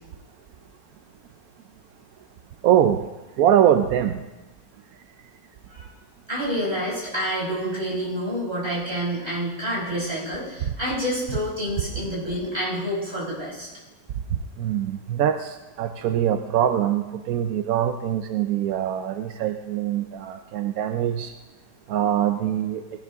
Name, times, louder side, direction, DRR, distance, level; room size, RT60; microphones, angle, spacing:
voice 1, 2.6-3.1 3.4-4.2 10.7-10.8 14.3-21.3 21.9-22.8, right 10 dB, 70° right, 7 dB, 0.9 m, -23 dB
voice 2, 6.3-13.7, equal, 25° right, -6 dB, 5.4 m, -28 dB
18.5 x 11.5 x 3.5 m, 1.1 s
omnidirectional pair, 2.0 m